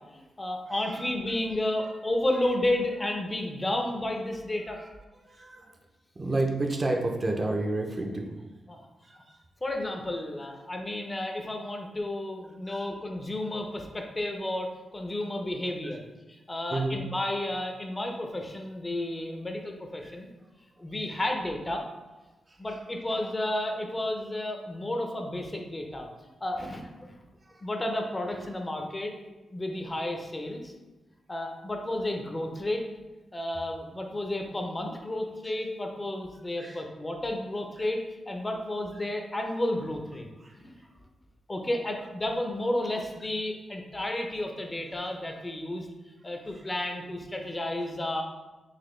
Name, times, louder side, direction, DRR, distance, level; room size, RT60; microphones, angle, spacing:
voice 1, 0.1-4.8 8.7-8.9 9.6-16.0 16.3-20.3 20.8-21.8 22.6-26.1 26.4-27.1 27.6-29.2 29.5-30.7 31.3-32.9 33.3-40.3 40.6-40.8 41.5-45.9 46.2-48.2, left 1 dB, 20° left, 3 dB, 0.5 m, -32 dB
voice 2, 5.3-5.7 6.2-8.3 9.0-9.4 12.7-12.8 16.7-17.0 20.0-20.1 36.6-36.8 40.4-40.5 46.5-46.6, right 2 dB, 30° right, 2 dB, 0.5 m, -30 dB
4.1 x 2.6 x 3.1 m, 1.1 s
cardioid pair, 95°, 0 cm